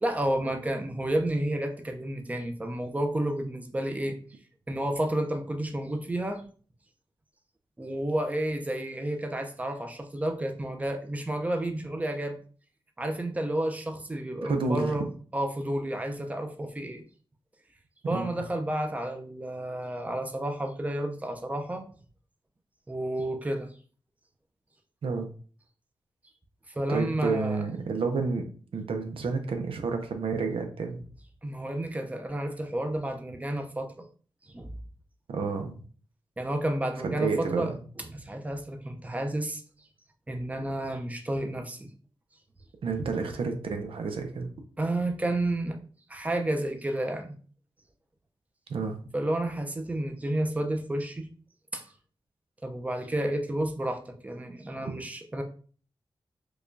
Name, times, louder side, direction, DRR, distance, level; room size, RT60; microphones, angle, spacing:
voice 1, 0.0-4.2 4.7-6.4 7.8-12.4 13.0-15.1 15.3-17.0 18.1-21.8 22.9-23.7 26.7-27.6 31.4-33.9 34.5-34.7 36.4-37.7 38.1-39.6 40.3-41.9 44.8-45.8 46.1-47.4 49.1-51.3 51.7-51.8 52.6-55.4, right 1 dB, 15° right, 4 dB, 0.6 m, -31 dB
voice 2, 14.4-15.1 18.1-18.4 25.0-25.3 26.9-28.4 28.7-31.0 35.3-35.7 37.0-37.8 42.8-44.5 48.7-49.0, right 4 dB, 85° right, 5 dB, 0.6 m, -30 dB
4.7 x 2.3 x 2.6 m, 0.41 s
wide cardioid pair, 85°, 9 cm